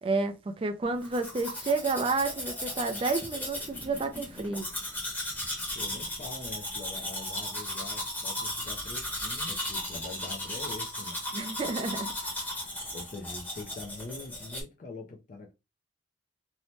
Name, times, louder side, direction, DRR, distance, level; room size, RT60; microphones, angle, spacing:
voice 1, 0.0-4.7 11.3-12.1, right 3 dB, 30° right, 0.3 m, -30 dB
Domestic sounds home sounds, 1.0-14.6, left 1 dB, 10° left, 0.9 m, -36 dB
voice 2, 5.7-11.2 12.9-15.5, left 3 dB, 40° left, 0.4 m, -43 dB
2.7 x 2.1 x 3.0 m
head